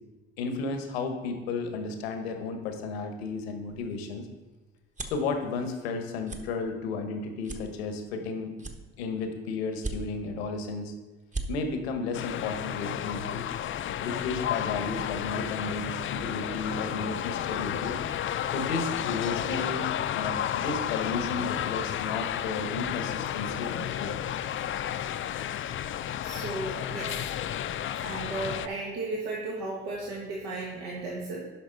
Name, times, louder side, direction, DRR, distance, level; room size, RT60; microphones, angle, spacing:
voice 1, 0.4-4.3 5.1-8.5 9.0-10.9 11.5-13.4 14.0-18.0 18.5-24.1, left 4 dB, 85° left, 6 dB, 1.1 m, -33 dB
sound 1, 3.7-5.3 5.8-6.0 6.2-6.4 6.9-7.0 7.4-8.2 8.6-9.3 9.7-10.4 10.8-10.9 11.2-11.5, right 2 dB, 25° right, 1.2 m, -37 dB
sound 2, 12.1-28.7, left 10 dB, 40° left, 0.5 m, -32 dB
voice 2, 26.2-27.2 28.0-31.4, right 2 dB, 80° right, -3 dB, 1.7 m, -35 dB
10.0 x 5.8 x 3.9 m, 1.2 s
hypercardioid pair, 60°, 30 cm